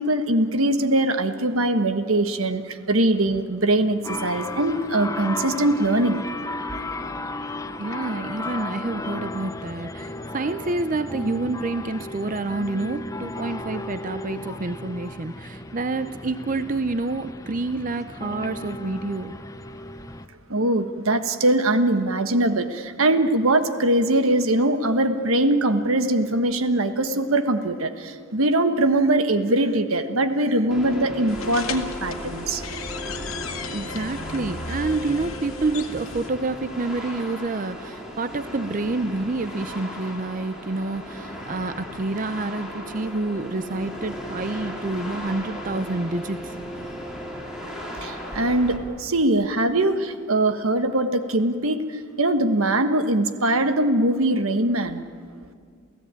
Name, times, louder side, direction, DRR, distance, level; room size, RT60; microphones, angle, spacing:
voice 1, 0.0-6.2 20.5-32.6 48.0-51.8 52.2-55.0, right 1 dB, 85° right, 9 dB, 1.4 m, -22 dB
sound 1, 4.0-20.3, left 2 dB, 15° left, 0.7 m, -34 dB
voice 2, 7.8-19.3 33.7-46.9, right 3 dB, 40° right, 11 dB, 0.6 m, -28 dB
sound 2, 30.7-48.8, equal, 5° right, 3.2 m, -36 dB
sound 3, 31.3-36.3, left 4 dB, 85° left, 1.7 m, -35 dB
28.5 x 16.0 x 9.0 m, 2.1 s
head